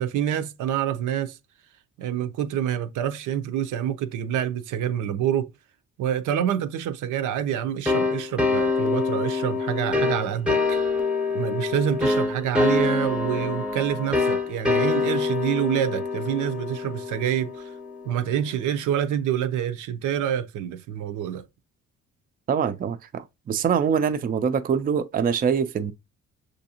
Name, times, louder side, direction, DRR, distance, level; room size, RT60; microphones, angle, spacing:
voice 1, 0.0-1.4 2.0-5.5 6.0-10.9 11.3-17.7 18.0-21.4, right 10 dB, 80° right, 0.6 m, -27 dB
sound 1, 7.9-18.3, left 3 dB, 5° right, 0.7 m, -25 dB
voice 2, 22.5-25.9, right 7 dB, 30° right, 0.4 m, -24 dB
6.2 x 2.6 x 2.8 m
cardioid pair, 90°, 30 cm